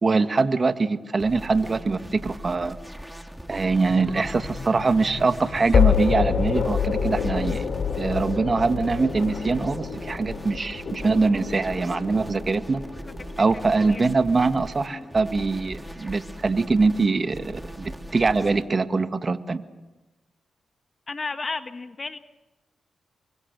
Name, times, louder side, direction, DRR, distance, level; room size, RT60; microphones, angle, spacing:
voice 1, 0.0-2.8 3.5-7.6 8.0-12.8 13.4-19.6, right 3 dB, 45° right, 9 dB, 2.0 m, -23 dB
sound 1, 1.2-18.7, equal, ahead, 3.9 m, -40 dB
sound 2, 3.9-14.9, left 7 dB, 65° left, 3.3 m, -28 dB
voice 2, 13.4-14.0 14.9-15.0 21.1-22.2, left 3 dB, 45° left, 9 dB, 1.6 m, -34 dB
30.0 x 24.0 x 6.8 m, 1.1 s
supercardioid pair, 45°, 0 cm